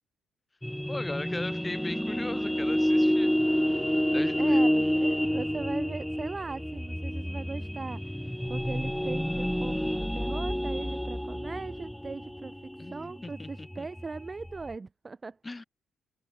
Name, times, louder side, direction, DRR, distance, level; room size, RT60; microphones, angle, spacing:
sound 1, 0.6-14.8, equal, 5° left, 0.5 m, -29 dB
voice 1, 0.9-3.3 4.1-4.6 12.8-13.9 15.4-15.6, left 2 dB, 20° left, 3.5 m, -39 dB
voice 2, 4.4-8.1 8.5-15.4, right 4 dB, 30° right, 4.3 m, -39 dB
cardioid pair, 90°, 0 cm